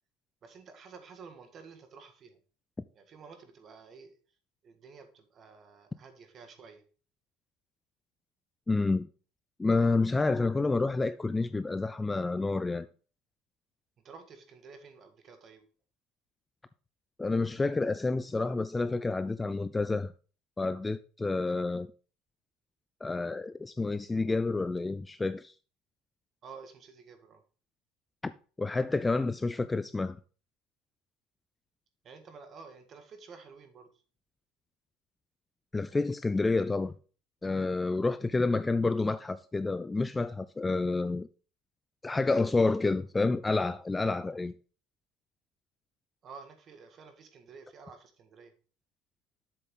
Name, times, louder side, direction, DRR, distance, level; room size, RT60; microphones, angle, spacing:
voice 1, 0.4-2.4 2.9-4.2 4.6-6.8 14.0-15.6 21.4-21.7 26.4-27.4 32.0-33.9 46.2-48.5, right 5 dB, 35° right, 1.7 m, -51 dB
voice 2, 8.7-9.1 9.6-12.9 17.2-20.1 20.6-21.9 23.0-25.5 28.6-30.2 35.7-36.9 37.4-41.3 42.0-44.5, left 3 dB, 10° left, 0.3 m, -29 dB
7.6 x 6.8 x 3.8 m
cardioid pair, 140°, 0 cm